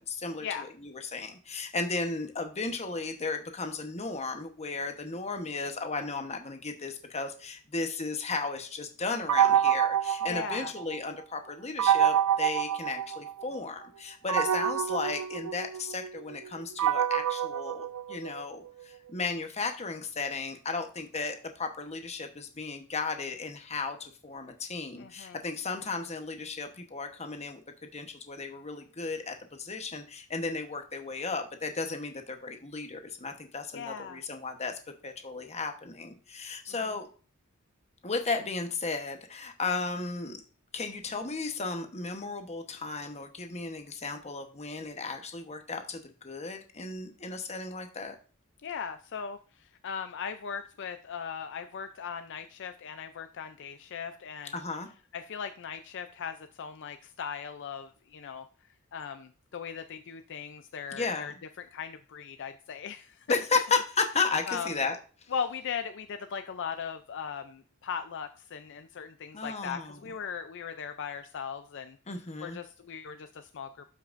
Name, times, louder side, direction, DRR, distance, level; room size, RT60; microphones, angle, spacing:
voice 1, 0.1-37.1 38.0-40.4 40.7-48.2 54.5-54.9 60.9-61.3 63.3-65.0 69.3-70.0 72.1-72.6, left 4 dB, 30° left, 5 dB, 1.1 m, -34 dB
sound 1, 9.3-11.1 11.8-13.6 14.3-18.6, right 10 dB, 90° right, 0.4 m, -27 dB
voice 2, 10.3-10.7 25.0-25.4 33.7-34.2 48.6-54.6 55.1-58.5 58.9-61.3 61.7-63.3 64.5-64.7 65.3-72.0 72.4-73.8, left 7 dB, 55° left, 9 dB, 0.5 m, -38 dB
12.0 x 5.8 x 2.6 m, 0.39 s
head